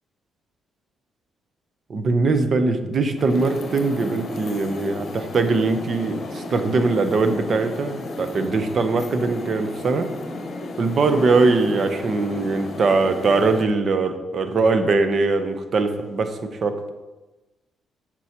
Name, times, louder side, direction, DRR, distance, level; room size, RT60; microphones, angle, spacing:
voice 1, 1.9-10.1 10.8-16.8, right 3 dB, 50° right, 8 dB, 0.7 m, -21 dB
sound 1, 3.2-13.6, left 2 dB, 45° left, 0.9 m, -33 dB
7.7 x 6.1 x 2.9 m, 1.1 s
cardioid pair, 90°, 0 cm